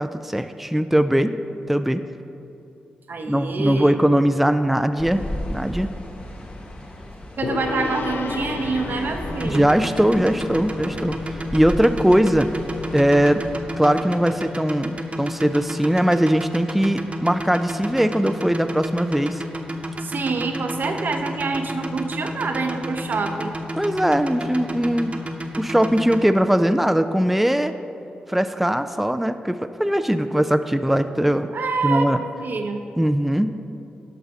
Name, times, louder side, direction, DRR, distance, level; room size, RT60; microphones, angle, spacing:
voice 1, 0.0-1.3 1.7-2.0 3.3-5.2 5.5-5.9 9.4-12.5 12.9-13.4 13.8-19.4 23.8-25.2 25.6-27.7 28.3-31.5 31.8-32.2 33.0-33.5, equal, 5° right, 9 dB, 0.4 m, -20 dB
voice 2, 3.1-4.0 7.4-9.7 20.0-23.5 31.5-32.1 32.4-32.8, right 4 dB, 65° right, 4 dB, 0.9 m, -26 dB
sound 1, 5.0-13.6, left 1 dB, 40° left, 1.4 m, -35 dB
Gong, 7.4-14.9, left 4 dB, 75° left, 0.5 m, -34 dB
sound 2, 9.3-26.2, right 1 dB, 35° right, 1.0 m, -31 dB
11.0 x 5.9 x 4.9 m, 2.8 s
supercardioid pair, 40°, 4 cm